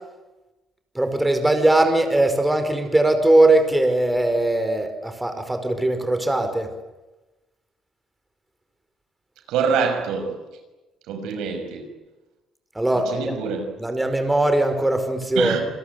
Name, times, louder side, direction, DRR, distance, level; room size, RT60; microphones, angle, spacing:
voice 1, 1.0-6.7 12.8-13.3 13.8-15.6, right 1 dB, 10° right, 7 dB, 5.2 m, -20 dB
voice 2, 9.5-10.4 11.1-11.8 12.9-13.7 15.3-15.6, right 5 dB, 85° right, 6 dB, 6.2 m, -25 dB
28.5 x 21.5 x 9.5 m, 1.1 s
cardioid pair, 95°, 0 cm